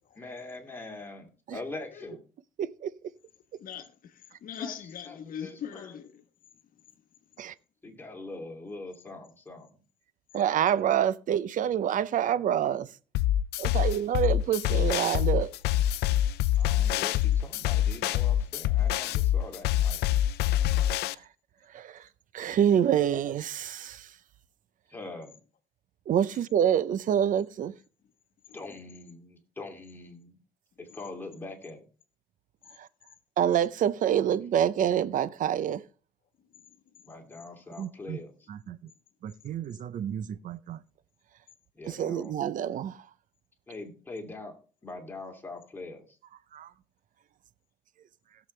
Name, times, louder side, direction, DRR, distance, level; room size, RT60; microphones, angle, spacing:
voice 1, 0.2-2.2 3.8-3.9 4.6-4.7 5.1-5.9 7.8-9.8 16.6-20.1 24.9-25.4 28.5-30.4 30.8-31.8 37.1-38.5 41.7-42.4 43.7-44.5 44.8-46.2, left 2 dB, 10° left, 2.7 m, -43 dB
voice 2, 2.6-2.9 7.4-7.5 10.3-12.9 13.6-15.5 21.1-21.2 21.7-22.1 22.3-24.1 26.1-27.7 32.8-32.9 33.4-35.8 37.8-38.2 38.5-38.9 39.2-40.8 41.8-43.0 46.5-46.7, right 9 dB, 50° right, 0.7 m, -27 dB
voice 3, 3.6-6.2 16.7-17.0 28.5-28.9 30.9-31.2 36.4-37.5, left 8 dB, 55° left, 1.3 m, -43 dB
sound 1, 13.1-21.1, left 12 dB, 75° left, 0.5 m, -25 dB
17.0 x 7.2 x 3.3 m
cardioid pair, 110°, 17 cm